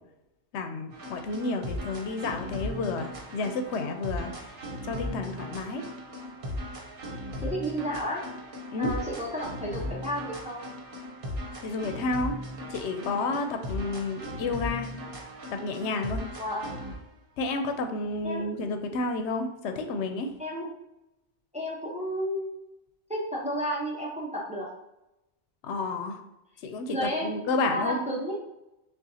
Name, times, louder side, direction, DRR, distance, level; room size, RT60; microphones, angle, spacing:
voice 1, 0.5-4.3 4.8-5.8 8.7-8.9 11.6-12.3 12.7-14.9 15.6-16.2 17.4-20.3 25.6-26.2 26.6-28.0, left 3 dB, 90° left, 6 dB, 0.9 m, -30 dB
sound 1, 0.9-17.0, left 1 dB, 55° right, 1.0 m, -38 dB
voice 2, 7.4-8.2 8.8-10.7 16.4-16.8 18.2-18.5 20.4-20.7 21.5-22.5 23.1-24.7 26.9-28.4, equal, 5° right, -4 dB, 0.8 m, -32 dB
6.4 x 2.4 x 2.7 m, 0.90 s
omnidirectional pair, 1.1 m